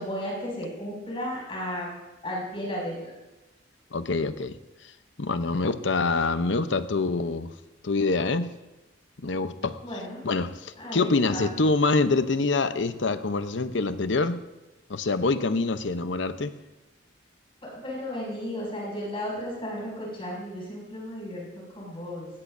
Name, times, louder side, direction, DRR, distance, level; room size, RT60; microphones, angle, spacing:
voice 1, 0.0-1.9 2.2-3.1 9.8-10.2 10.8-11.5 17.6-21.5 21.7-22.3, equal, 30° left, -5 dB, 6.3 m, -34 dB
voice 2, 3.9-4.6 5.2-7.5 7.8-8.5 9.2-9.8 10.2-14.4 14.9-16.5, left 3 dB, 80° left, 11 dB, 0.8 m, -25 dB
19.0 x 16.5 x 2.7 m, 1.1 s
head